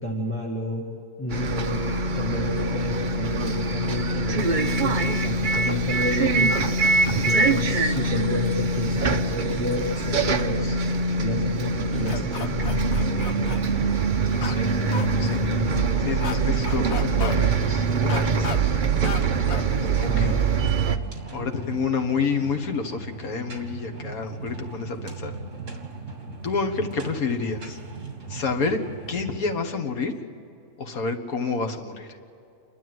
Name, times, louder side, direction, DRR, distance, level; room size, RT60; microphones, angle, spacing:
voice 1, 0.0-0.8 1.2-6.6 7.1-10.8 11.2-12.9 20.0-20.5, left 1 dB, 10° left, -2 dB, 2.0 m, -30 dB
Bus, 1.3-21.0, right 3 dB, 40° right, 0.9 m, -23 dB
sound 1, 12.1-13.6 14.4-14.6 14.9-15.0 16.2-16.3 16.6-17.4 18.1-18.6 19.0-19.2 19.5-19.6, left 6 dB, 55° left, 1.2 m, -33 dB
voice 2, 14.3-15.4 16.0-18.6 20.0-20.3 21.3-25.3 26.4-27.8 28.3-28.8 29.1-30.1 30.8-32.1, left 4 dB, 80° left, 5 dB, 2.0 m, -29 dB
sound 2, 18.9-29.6, right 3 dB, 60° right, 2.8 m, -38 dB
29.0 x 12.0 x 7.8 m, 2.7 s
omnidirectional pair, 1.5 m